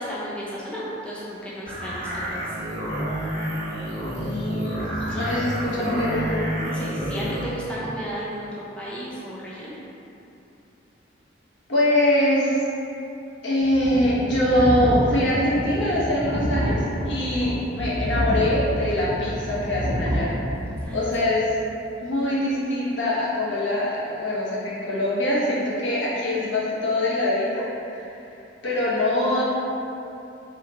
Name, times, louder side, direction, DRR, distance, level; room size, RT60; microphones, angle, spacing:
voice 1, 0.0-2.5 5.1-5.2 6.7-9.7 20.8-21.0, equal, 5° left, -8 dB, 0.5 m, -34 dB
sound 1, 1.7-7.4, equal, 50° right, 1.0 m, -29 dB
voice 2, 4.0-6.4 11.7-12.6 13.4-20.3 20.9-21.4 22.0-27.6 27.9-28.1 28.6-29.4, left 1 dB, 75° left, -7 dB, 1.1 m, -23 dB
sound 2, 13.6-20.8, equal, 85° right, 0.7 m, -27 dB
4.3 x 3.7 x 2.8 m, 2.7 s
head